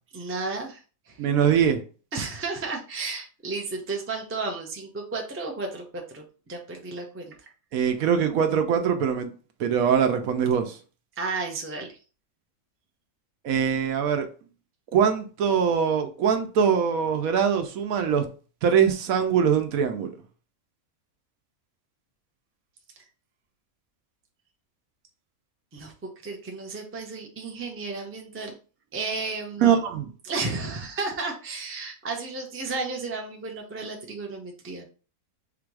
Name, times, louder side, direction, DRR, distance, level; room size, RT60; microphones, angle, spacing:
voice 1, 0.1-0.8 1.1-1.2 2.1-7.5 11.2-12.0 25.7-25.9 26.2-28.5 28.9-29.8 30.2-34.9, right 3 dB, 20° right, 0.3 m, -33 dB
voice 2, 1.2-1.8 7.7-9.3 9.6-10.8 13.4-14.3 14.9-18.3 18.6-20.1 29.6-30.1, right 7 dB, 70° right, 1.1 m, -22 dB
3.8 x 2.5 x 4.6 m
omnidirectional pair, 1.6 m